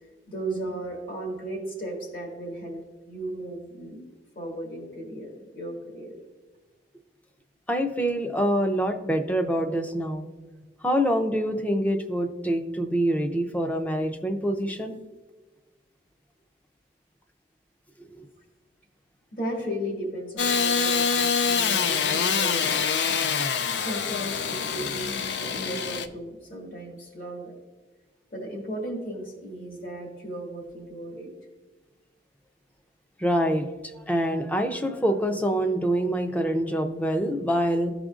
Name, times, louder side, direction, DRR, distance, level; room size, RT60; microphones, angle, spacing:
voice 1, 0.3-2.8 3.1-4.0 4.4-6.2 19.3-22.7 23.8-27.5 28.3-31.3, right 1 dB, 50° left, 0 dB, 1.9 m, -35 dB
voice 2, 7.7-10.3 10.8-15.0 18.0-18.3 33.2-33.7 34.0-37.9, equal, 10° left, 6 dB, 0.5 m, -25 dB
Engine starting / Sawing, 20.4-26.1, left 6 dB, 80° left, 0.5 m, -25 dB
14.5 x 5.0 x 2.4 m, 1.3 s
head